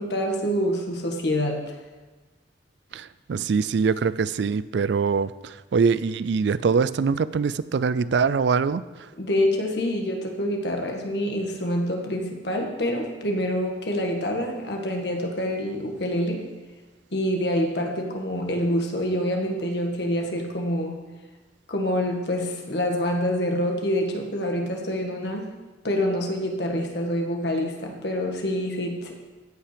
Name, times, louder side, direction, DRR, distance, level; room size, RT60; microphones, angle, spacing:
voice 1, 0.0-1.7 9.2-16.5 17.1-21.0 21.7-25.6 25.8-29.1, equal, 65° left, 2 dB, 1.6 m, -26 dB
voice 2, 2.9-9.1, right 5 dB, 70° right, 17 dB, 0.4 m, -23 dB
15.5 x 5.8 x 5.1 m, 1.3 s
head